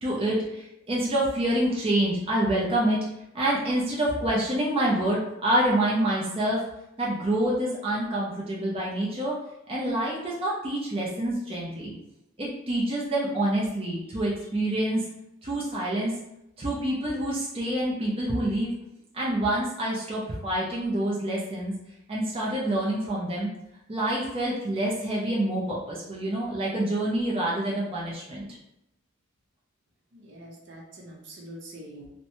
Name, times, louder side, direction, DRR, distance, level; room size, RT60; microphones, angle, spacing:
voice 1, 0.0-3.0 3.3-6.6 7.0-9.3 9.7-11.9 12.4-15.0 15.4-16.1 16.6-18.7 19.1-21.7 22.1-23.5 23.9-28.5, right 1 dB, 30° right, -5 dB, 0.5 m, -27 dB
voice 2, 30.1-32.1, right 1 dB, 65° right, -2 dB, 0.7 m, -44 dB
2.9 x 2.1 x 2.6 m, 0.84 s
head